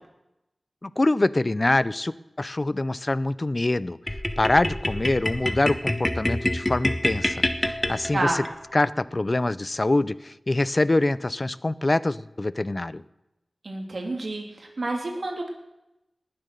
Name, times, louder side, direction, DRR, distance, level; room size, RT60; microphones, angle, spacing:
voice 1, 0.8-4.0 4.4-8.4 8.7-13.0, left 2 dB, 40° left, 18 dB, 0.5 m, -24 dB
sound 1, 4.1-8.5, left 1 dB, 20° left, 1.2 m, -27 dB
voice 2, 8.1-8.4 13.6-15.5, right 2 dB, 70° right, 2 dB, 2.9 m, -29 dB
19.0 x 7.7 x 6.8 m, 0.91 s
wide cardioid pair, 55°, 0 cm